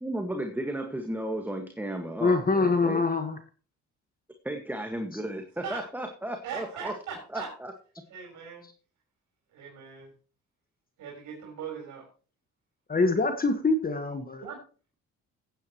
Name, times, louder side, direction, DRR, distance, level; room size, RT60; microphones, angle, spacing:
voice 1, 0.0-3.0 4.4-6.9 7.3-7.7, right 1 dB, 5° right, 4 dB, 1.7 m, -34 dB
voice 2, 2.2-3.4 12.9-14.4, left 3 dB, 30° left, 7 dB, 1.5 m, -25 dB
voice 3, 6.4-7.6 8.1-8.6 9.5-10.1 11.0-12.1 14.4-14.6, right 6 dB, 85° right, -2 dB, 4.3 m, -39 dB
16.0 x 9.5 x 3.1 m, 0.37 s
cardioid pair, 90°, 30 cm